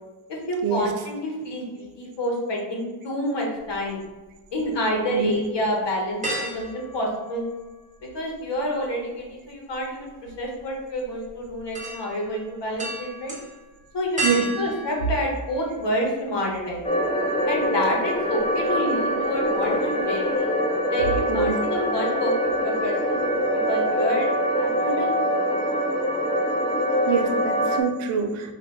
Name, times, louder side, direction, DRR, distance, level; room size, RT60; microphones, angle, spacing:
voice 1, 0.3-4.0 4.5-6.2 6.5-7.4 8.1-13.3 13.9-16.8 17.5-20.5 20.9-23.4 23.7-24.3 24.5-25.2, equal, 60° left, -1 dB, 1.4 m, -28 dB
sound 1, 3.6-4.6 5.0-5.1 6.2-8.0 8.2-16.1 16.6-16.7 18.1-18.7 19.0-19.2 19.4-20.0 20.3-20.4, right 1 dB, 15° right, 1.1 m, -35 dB
sound 2, 16.8-27.8, equal, 10° left, 0.6 m, -24 dB
voice 2, 27.1-28.5, right 6 dB, 85° right, 5 dB, 0.7 m, -25 dB
4.9 x 2.5 x 3.8 m, 1.2 s
cardioid pair, 85°, 48 cm